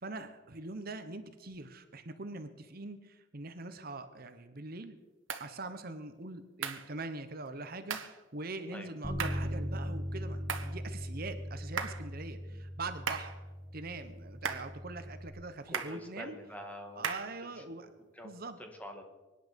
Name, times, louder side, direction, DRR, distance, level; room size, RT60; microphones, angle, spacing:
voice 1, 0.0-5.0 5.4-13.4 13.7-16.4 17.0-17.9 18.2-18.6, right 3 dB, 50° right, 9 dB, 1.0 m, -43 dB
sound 1, 5.3-5.5 6.6-6.9 7.9-8.2 9.2-9.5 10.5-10.8 11.8-12.1 13.1-13.4 14.4-14.7 15.7-16.0 17.0-17.4, right 6 dB, 80° right, 1.4 m, -36 dB
Bass guitar, 9.0-15.3, equal, 15° right, 2.2 m, -39 dB
voice 2, 15.7-19.0, left 1 dB, 10° left, 3 dB, 2.0 m, -47 dB
24.0 x 10.5 x 5.3 m, 1.2 s
head